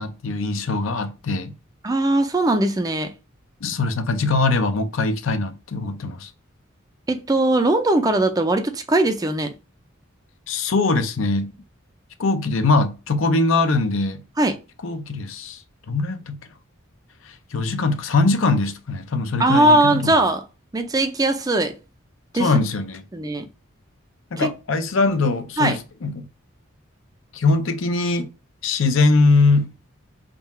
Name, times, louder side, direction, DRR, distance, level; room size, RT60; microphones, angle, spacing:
voice 1, 0.0-1.5 3.6-6.3 10.5-11.5 12.2-14.2 14.8-15.6 15.9-16.4 17.5-20.1 22.4-23.0 24.3-26.3 27.3-28.3 28.6-29.7, left 3 dB, 70° left, 0.6 m, -21 dB
voice 2, 1.8-3.1 7.1-9.5 14.4-14.6 19.4-20.4 20.7-21.8 22.3-22.5 23.1-23.5 24.4-24.5 25.6-25.8, right 2 dB, 20° right, 0.4 m, -19 dB
3.7 x 2.4 x 4.1 m
head